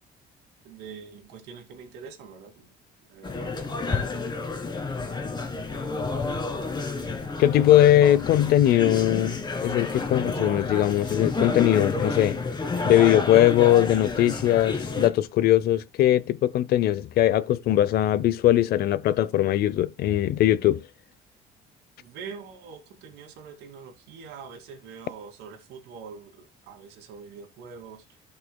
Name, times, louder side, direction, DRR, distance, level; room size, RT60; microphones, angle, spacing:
voice 1, 0.6-2.7 3.1-4.8 5.1-5.9 22.0-28.0, right 6 dB, 90° right, 2.4 m, -44 dB
sound 1, 3.2-15.1, left 3 dB, 25° left, 1.7 m, -30 dB
voice 2, 7.4-12.4 12.8-20.8, left 13 dB, 65° left, 0.7 m, -20 dB
15.0 x 5.6 x 2.3 m
cardioid pair, 110°, 17 cm